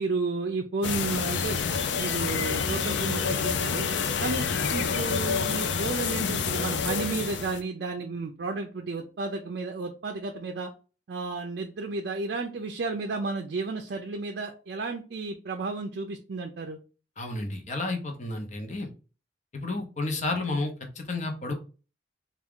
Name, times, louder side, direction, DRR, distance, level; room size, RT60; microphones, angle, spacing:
voice 1, 0.0-1.6 2.0-3.9 4.2-10.7 11.1-16.8 19.7-19.8, right 3 dB, 65° right, 3 dB, 0.4 m, -32 dB
sound 1, 0.8-7.6, left 6 dB, 80° left, 0.4 m, -28 dB
voice 2, 17.2-18.9 19.5-21.5, left 2 dB, 40° left, 4 dB, 0.8 m, -31 dB
3.5 x 2.4 x 3.5 m, 0.35 s
head